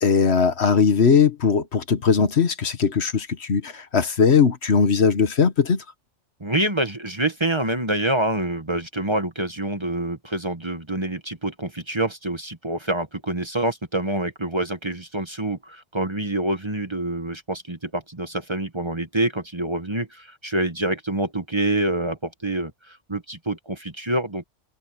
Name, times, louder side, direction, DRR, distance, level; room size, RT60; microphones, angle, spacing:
voice 1, 0.0-5.8, left 6 dB, 65° left, 1.5 m, -19 dB
voice 2, 6.4-24.4, right 1 dB, 25° right, 1.3 m, -26 dB
omnidirectional pair, 1.2 m